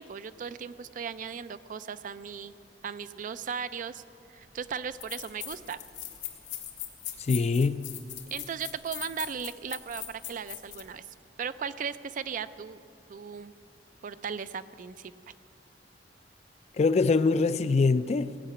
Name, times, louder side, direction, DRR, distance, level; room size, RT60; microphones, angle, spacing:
voice 1, 0.0-2.5 2.8-4.0 4.3-5.8 8.3-11.1 11.4-12.8 13.1-13.5 14.0-15.1, right 7 dB, 45° right, 0.4 m, -37 dB
sound 1, 4.4-4.5 5.0-10.9, left 12 dB, 80° left, 1.6 m, -40 dB
voice 2, 7.2-7.9 16.8-18.3, left 4 dB, 40° left, 0.3 m, -24 dB
17.5 x 5.8 x 8.3 m
head